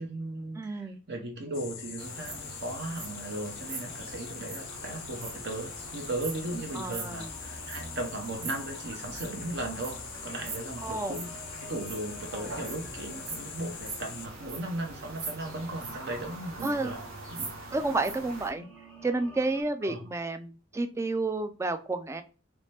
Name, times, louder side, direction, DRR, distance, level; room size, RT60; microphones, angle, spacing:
voice 1, 0.0-11.3 11.6-17.0 17.3-17.5 19.8-20.0, right 2 dB, 55° right, 3 dB, 0.9 m, -37 dB
voice 2, 0.6-1.0 6.7-7.3 10.8-11.2 12.3-12.6 16.6-16.9 17.7-18.7 19.0-22.2, right 2 dB, 15° right, 8 dB, 0.3 m, -31 dB
sound 1, 1.5-14.3, left 8 dB, 65° left, 0.5 m, -43 dB
sound 2, 2.0-18.5, right 3 dB, 85° right, 1.1 m, -42 dB
sound 3, 3.2-19.6, right 1 dB, 5° left, 0.8 m, -52 dB
3.1 x 2.8 x 3.3 m, 0.34 s
head